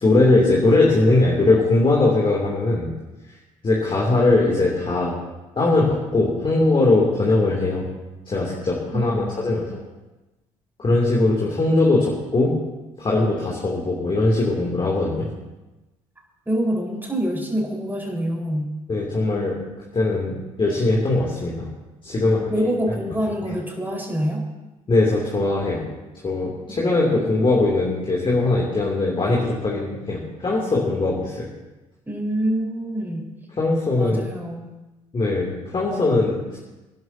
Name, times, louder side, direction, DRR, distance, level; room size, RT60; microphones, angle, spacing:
voice 1, 0.0-2.9 3.6-5.1 5.6-7.9 8.3-9.7 10.8-12.6 13.0-15.3 18.9-19.6 19.9-21.7 22.0-22.5 24.9-25.8 26.2-31.5 33.6-34.2 35.1-36.6, left 2 dB, 30° left, -4 dB, 2.9 m, -20 dB
voice 2, 8.9-9.8 16.5-18.7 22.2-24.4 32.0-33.2 34.0-34.7, equal, 10° right, -2 dB, 4.8 m, -26 dB
26.0 x 11.0 x 2.9 m, 1.1 s
figure-of-eight pair, 50°, 17 cm